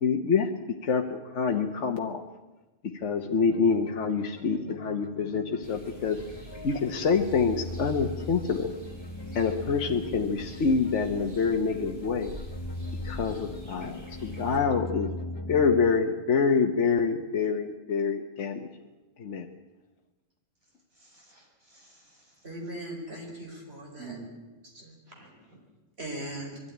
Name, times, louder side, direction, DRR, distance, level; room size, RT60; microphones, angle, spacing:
voice 1, 0.0-0.5 0.8-2.2 3.0-6.2 6.6-8.7 9.3-12.3 13.0-15.1 15.5-18.7 19.2-19.5, left 5 dB, 60° left, 3 dB, 1.3 m, -26 dB
sound 1, 3.3-15.9, left 2 dB, 30° left, 0.5 m, -40 dB
sound 2, 5.6-14.6, right 1 dB, 20° right, 7.4 m, -45 dB
voice 2, 20.9-22.5 24.0-24.3 25.1-25.6, right 4 dB, 80° right, -2 dB, 6.0 m, -49 dB
voice 3, 22.4-24.2 24.7-25.0 26.0-26.6, right 1 dB, 50° right, 0 dB, 4.8 m, -39 dB
21.5 x 13.0 x 10.0 m, 1.2 s
omnidirectional pair, 1.4 m